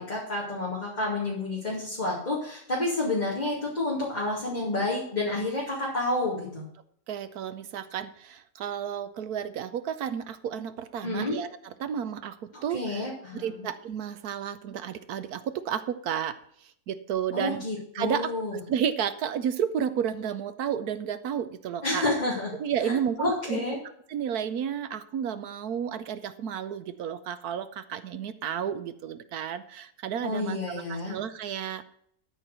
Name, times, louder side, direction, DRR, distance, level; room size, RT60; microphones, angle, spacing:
voice 1, 0.0-6.7 11.0-11.4 12.7-13.7 17.3-18.6 21.8-22.5 22.8-23.8 30.2-31.2, left 2 dB, 25° left, -5 dB, 2.5 m, -30 dB
voice 2, 7.1-13.0 13.3-17.6 17.9-22.0 22.5-23.6 24.1-31.8, right 8 dB, 65° right, 12 dB, 1.1 m, -32 dB
12.5 x 4.6 x 7.9 m, 0.69 s
omnidirectional pair, 1.8 m